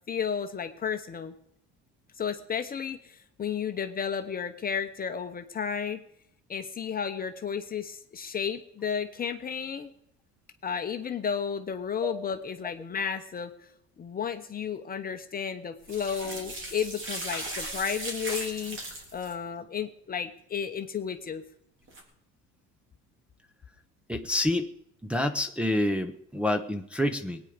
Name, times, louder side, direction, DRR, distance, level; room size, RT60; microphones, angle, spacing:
voice 1, 0.1-1.3 2.2-6.0 6.5-9.9 10.6-13.5 14.0-18.8 19.1-21.4, left 7 dB, 30° left, 6 dB, 1.0 m, -33 dB
sound 1, 15.8-19.3 21.9-22.0, right 2 dB, 40° right, 3.6 m, -37 dB
voice 2, 24.1-24.7 25.0-27.4, left 1 dB, 5° right, 3 dB, 0.8 m, -28 dB
19.5 x 9.3 x 5.1 m, 0.73 s
cardioid pair, 125°, 30 cm